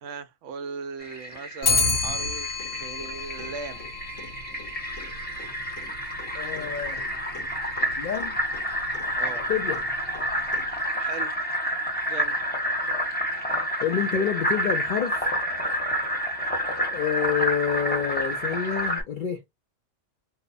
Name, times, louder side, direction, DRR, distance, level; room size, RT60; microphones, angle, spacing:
voice 1, 0.0-3.9 9.1-9.5 11.0-11.4 12.1-12.4, right 5 dB, 75° right, 0.9 m, -38 dB
Fill (with liquid), 1.0-19.0, equal, 10° left, 0.8 m, -29 dB
Clock, 1.6-11.0, left 4 dB, 85° left, 1.2 m, -32 dB
voice 2, 6.3-7.1 8.0-8.4 9.5-9.8 13.8-15.3 16.9-19.4, left 8 dB, 70° left, 0.5 m, -28 dB
2.8 x 2.0 x 2.4 m
omnidirectional pair, 1.3 m